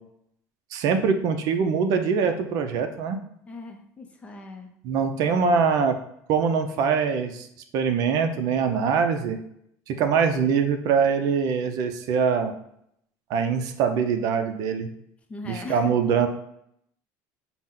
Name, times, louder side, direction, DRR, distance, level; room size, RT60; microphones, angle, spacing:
voice 1, 0.7-3.2 4.8-6.0 6.3-7.5 7.7-9.4 9.9-12.5 13.3-14.9 15.4-16.3, right 6 dB, 55° right, 7 dB, 0.5 m, -23 dB
voice 2, 3.5-4.7 5.3-5.6 15.3-15.9, left 3 dB, 20° left, 4 dB, 0.5 m, -39 dB
5.9 x 2.1 x 3.7 m, 0.73 s
cardioid pair, 150°, 7 cm